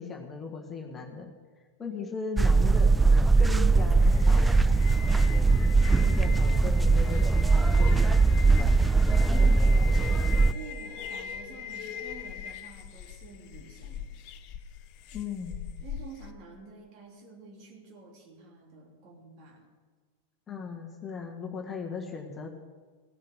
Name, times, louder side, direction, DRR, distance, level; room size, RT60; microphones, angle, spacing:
voice 1, 0.0-1.3 1.8-2.9 3.4-4.5 5.0-5.3 6.0-8.2 15.1-15.6 20.5-22.5, left 5 dB, 20° left, 1 dB, 1.6 m, -38 dB
sound 1, 2.4-10.5, right 3 dB, 10° right, 0.3 m, -21 dB
sound 2, 4.0-16.3, left 9 dB, 40° left, 0.8 m, -40 dB
voice 2, 5.8-6.3 8.8-14.1 15.8-19.7, right 4 dB, 40° right, 0 dB, 3.3 m, -49 dB
17.0 x 7.4 x 8.0 m, 1.5 s
figure-of-eight pair, 90°, 0 cm